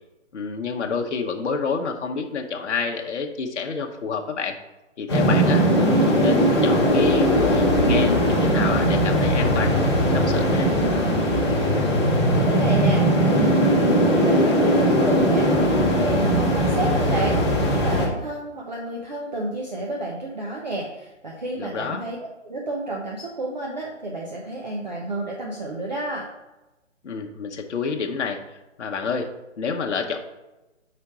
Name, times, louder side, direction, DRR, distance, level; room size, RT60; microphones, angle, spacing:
voice 1, 0.3-4.6 5.0-5.6 6.0-10.7 21.6-22.0 27.0-28.4 28.8-29.3 29.6-30.2, left 5 dB, 65° left, 3 dB, 0.8 m, -28 dB
sound 1, 5.1-18.1, equal, 20° left, 0.9 m, -19 dB
voice 2, 12.3-22.2 22.4-26.3, right 2 dB, 35° right, -2 dB, 0.7 m, -31 dB
5.0 x 4.3 x 4.7 m, 1.0 s
hypercardioid pair, 175°, 37 cm